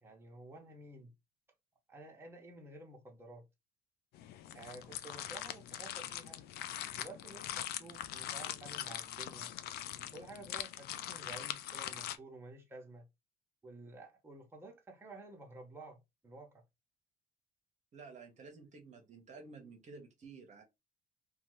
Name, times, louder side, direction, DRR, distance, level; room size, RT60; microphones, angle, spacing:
voice 1, 0.0-1.1 1.9-3.4 4.5-6.4 6.9-9.5 10.1-13.1 13.6-16.6, right 2 dB, 15° right, 0.9 m, -52 dB
sound 1, 4.1-12.2, left 12 dB, 75° left, 0.4 m, -42 dB
voice 2, 17.9-20.6, right 4 dB, 45° right, 0.9 m, -52 dB
2.7 x 2.3 x 3.0 m
cardioid pair, 110°, 17 cm